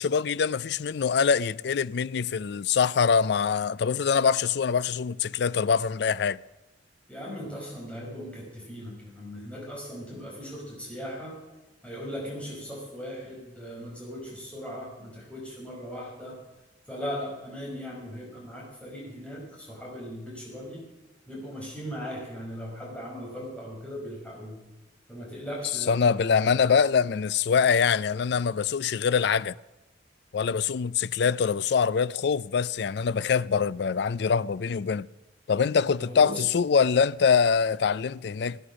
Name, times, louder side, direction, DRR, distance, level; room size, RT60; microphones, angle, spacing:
voice 1, 0.0-6.4 25.9-29.5 30.3-35.1 35.5-38.6, left 6 dB, 60° left, 0.4 m, -24 dB
voice 2, 7.1-11.3 11.8-16.4 16.9-20.8 21.3-24.6 25.1-26.5 36.0-36.4, equal, 5° left, 5.4 m, -38 dB
17.5 x 10.0 x 6.2 m
head